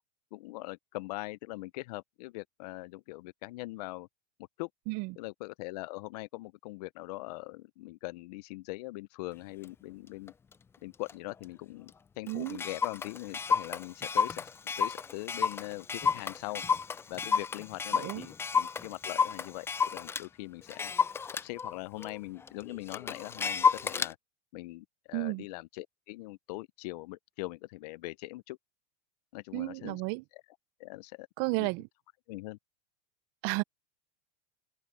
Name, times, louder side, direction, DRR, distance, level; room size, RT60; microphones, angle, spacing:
voice 1, 0.3-4.1 4.6-4.7 5.2-10.3 10.8-14.5 14.8-16.6 17.1-20.9 21.3-24.2 24.5-28.6 29.3-30.0 30.3-30.4 30.8-31.3 31.6-31.7 32.3-32.6, left 21 dB, 65° left, 0.6 m, -42 dB
voice 2, 4.9-5.2 12.3-12.6 17.9-18.3 25.1-25.4 29.5-30.2 31.4-31.9 33.4-33.6, right 25 dB, 50° right, 0.7 m, -32 dB
Clock, 9.6-9.7 10.3-10.5 11.1-11.2 11.4-11.5 11.9-12.0 12.3-20.3 20.7-24.1, left 6 dB, 10° left, 0.4 m, -31 dB
open air
supercardioid pair, 130°, 21 cm